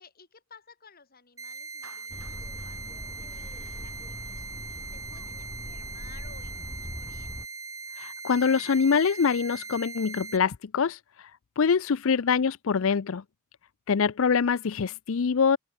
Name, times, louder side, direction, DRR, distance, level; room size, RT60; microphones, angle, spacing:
voice 1, 0.0-4.0 4.3-4.5 4.9-7.3 14.3-14.6, left 5 dB, 40° left, 4.0 m, -55 dB
sound 1, 1.4-10.4, right 4 dB, 15° right, 2.3 m, -40 dB
Clapping, 1.8-4.1, right 6 dB, 85° right, 2.7 m, -56 dB
sound 2, 2.1-7.5, equal, ahead, 0.3 m, -41 dB
voice 2, 8.0-11.0 11.6-13.2 13.9-15.6, left 6 dB, 65° left, 0.5 m, -24 dB
open air
head